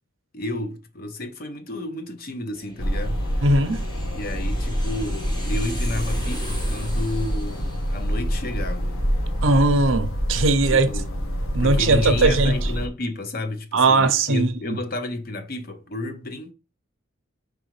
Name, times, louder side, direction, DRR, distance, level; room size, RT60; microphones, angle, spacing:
voice 1, 0.3-3.5 4.1-9.0 10.6-11.1 11.6-16.5, left 2 dB, 45° left, 0.6 m, -31 dB
sound 1, 2.5-11.1, equal, 20° left, 1.0 m, -40 dB
sound 2, 2.8-12.9, equal, 80° left, 0.9 m, -26 dB
voice 2, 3.4-3.8 9.4-10.9 11.5-12.6 13.7-14.8, right 3 dB, 70° right, 0.6 m, -19 dB
4.7 x 3.7 x 3.0 m
head